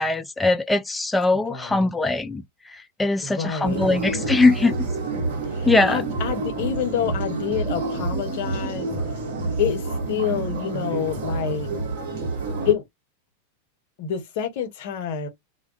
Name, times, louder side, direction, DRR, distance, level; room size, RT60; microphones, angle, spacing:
voice 1, 0.0-2.4 2.7-4.7 5.7-6.0, left 2 dB, 10° left, 0.3 m, -21 dB
voice 2, 1.5-1.8 3.2-4.4 5.5-8.9 9.6-11.7 12.6-12.8 14.0-15.3, left 8 dB, 50° left, 0.9 m, -27 dB
sound 1, 3.6-12.7, right 3 dB, 55° right, 0.9 m, -28 dB
2.2 x 2.2 x 3.5 m
figure-of-eight pair, 90°, 0 cm